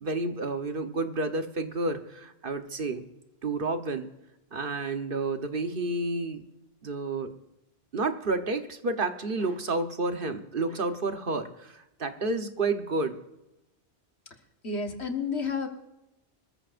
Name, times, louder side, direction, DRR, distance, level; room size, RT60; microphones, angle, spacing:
voice 1, 0.0-3.0 3.4-4.1 4.5-6.4 6.8-7.3 7.9-13.2, right 3 dB, 55° right, 7 dB, 1.3 m, -30 dB
voice 2, 14.6-15.7, left 4 dB, 80° left, 4 dB, 1.8 m, -30 dB
24.5 x 14.0 x 2.6 m, 0.91 s
omnidirectional pair, 1.1 m